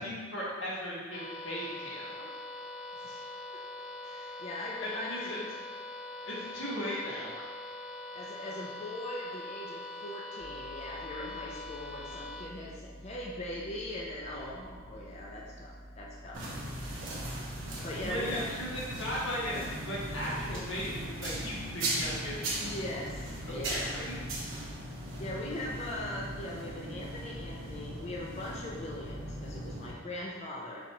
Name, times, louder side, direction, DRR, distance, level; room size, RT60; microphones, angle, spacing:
voice 1, 0.0-2.2 4.8-5.4 6.2-7.4 18.0-22.6 23.5-24.2, equal, 90° left, -7 dB, 1.3 m, -37 dB
sound 1, 1.1-12.4, left 2 dB, 70° left, 0.7 m, -43 dB
voice 2, 2.9-3.3 4.0-5.3 8.1-16.4 17.8-18.5 22.6-23.8 25.2-30.8, left 1 dB, 35° left, -3 dB, 0.4 m, -40 dB
sound 2, 10.4-21.2, equal, 40° right, 1.1 m, -51 dB
sound 3, 16.3-29.9, right 1 dB, 85° right, 0.9 m, -38 dB
4.1 x 2.4 x 4.2 m, 1.5 s
head